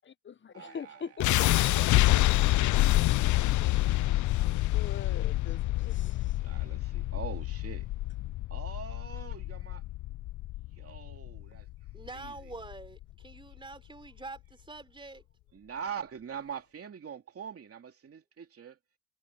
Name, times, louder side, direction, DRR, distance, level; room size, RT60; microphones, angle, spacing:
voice 1, 0.0-1.9 3.4-4.3 4.7-6.4, left 7 dB, 30° left, 1.1 m, -43 dB
voice 2, 0.5-1.0 6.4-7.9 8.5-9.8 10.7-11.7 12.1-12.3 15.5-18.8, right 7 dB, 40° right, 2.6 m, -43 dB
sound 1, 1.2-13.2, left 17 dB, 55° left, 0.5 m, -27 dB
voice 3, 11.9-15.2, right 2 dB, 15° right, 3.7 m, -45 dB
cardioid pair, 95°, 35 cm